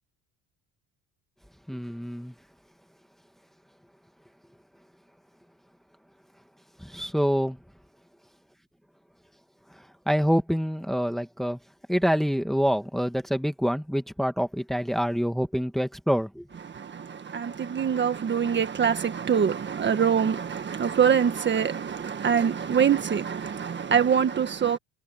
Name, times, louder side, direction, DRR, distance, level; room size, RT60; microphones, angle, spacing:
voice 1, 1.7-2.3 6.8-7.6 9.7-11.6 11.9-16.5, equal, ahead, 1.9 m, -26 dB
voice 2, 16.7-24.8, right 7 dB, 30° right, 1.6 m, -24 dB
cardioid pair, 130°, 37 cm